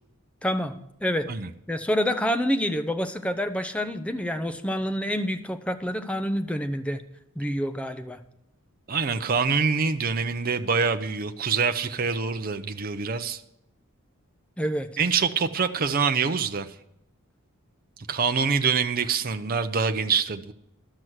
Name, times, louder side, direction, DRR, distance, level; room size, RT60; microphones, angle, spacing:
voice 1, 0.4-0.7 1.0-1.3 1.7-7.0 7.4-8.2 14.6-14.9, equal, 5° left, 7 dB, 0.7 m, -27 dB
voice 2, 8.9-13.4 15.0-16.7 18.1-20.5, right 5 dB, 45° right, 8 dB, 0.6 m, -25 dB
12.5 x 6.1 x 8.0 m, 0.80 s
head